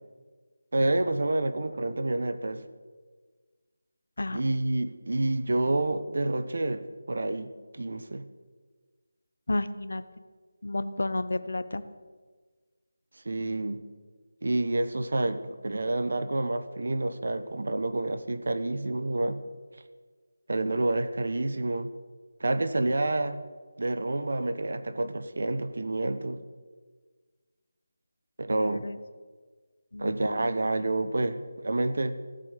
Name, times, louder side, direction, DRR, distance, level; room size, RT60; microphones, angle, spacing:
voice 1, 0.7-2.6 4.3-8.2 13.2-13.8 14.4-19.4 20.5-21.9 22.4-23.4 23.8-26.4 28.4-28.8 30.0-32.2, right 2 dB, 65° right, 11 dB, 1.2 m, -28 dB
voice 2, 9.5-10.0 10.6-11.8 28.5-29.0 29.9-30.8, left 2 dB, 75° left, 11 dB, 1.0 m, -32 dB
17.0 x 8.0 x 8.3 m, 1.5 s
figure-of-eight pair, 170°, 0 cm